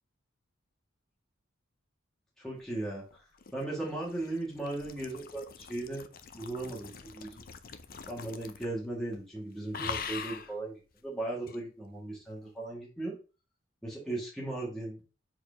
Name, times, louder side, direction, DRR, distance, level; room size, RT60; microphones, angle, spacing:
voice 1, 2.4-3.2 3.5-6.1 6.3-7.4 8.1-13.2 13.8-15.0, right 2 dB, ahead, -4 dB, 1.8 m, -37 dB
sound 1, 3.1-8.9 9.1-9.4 9.7-10.5 11.5-11.6, left 6 dB, 45° left, 0.6 m, -43 dB
4.7 x 4.3 x 5.0 m, 0.33 s
head